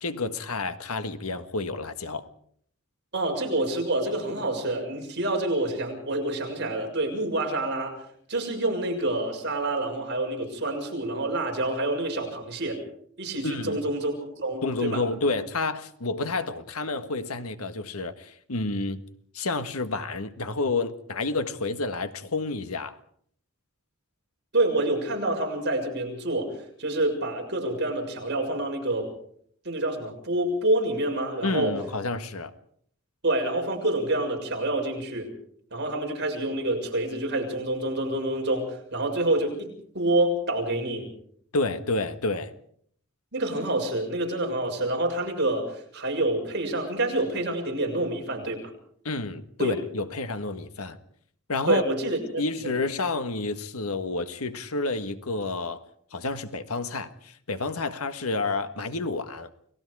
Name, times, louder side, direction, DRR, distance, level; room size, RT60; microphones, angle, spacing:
voice 1, 0.0-2.3 13.4-13.8 14.6-19.0 19.3-23.0 31.4-32.5 41.5-42.5 49.1-51.0 51.5-51.8 52.4-55.8 56.1-59.5, left 3 dB, 90° left, 1.7 m, -29 dB
voice 2, 3.1-8.0 8.3-12.8 13.2-15.0 24.5-29.1 29.7-31.8 33.2-35.3 35.7-41.1 43.3-48.7 49.6-49.7 51.7-52.2 52.6-52.7, right 1 dB, 50° right, 6.8 m, -27 dB
30.0 x 19.5 x 4.9 m
head